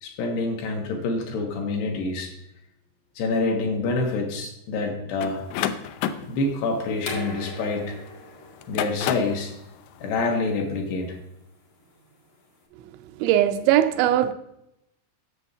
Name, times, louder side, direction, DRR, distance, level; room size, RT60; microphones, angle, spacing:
voice 1, 0.0-2.3 3.2-5.5 6.3-8.0 8.7-9.5 10.0-11.2, left 3 dB, 75° left, 3.1 m, -27 dB
sound 1, 5.2-7.9 8.5-9.4, left 10 dB, 90° left, 2.2 m, -30 dB
sound 2, 7.0-12.6, left 2 dB, 55° left, 1.3 m, -40 dB
voice 2, 13.2-14.3, right 12 dB, 85° right, 2.8 m, -20 dB
8.2 x 6.7 x 7.1 m
omnidirectional pair, 5.3 m